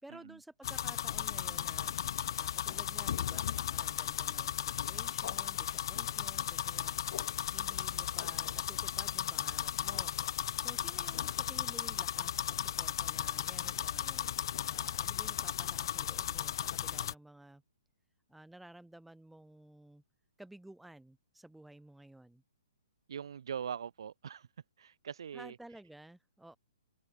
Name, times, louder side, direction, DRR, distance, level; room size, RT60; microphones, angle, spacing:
voice 1, 0.0-7.0 7.5-10.2 10.5-17.6 18.3-20.0 20.4-22.4 25.3-26.6, right 1 dB, ahead, 2.1 m, -54 dB
sound 1, 0.6-17.1, left 10 dB, 55° left, 0.5 m, -35 dB
voice 2, 23.1-24.5 24.8-25.6, right 8 dB, 65° right, 1.6 m, -42 dB
hypercardioid pair, 155°, 3 cm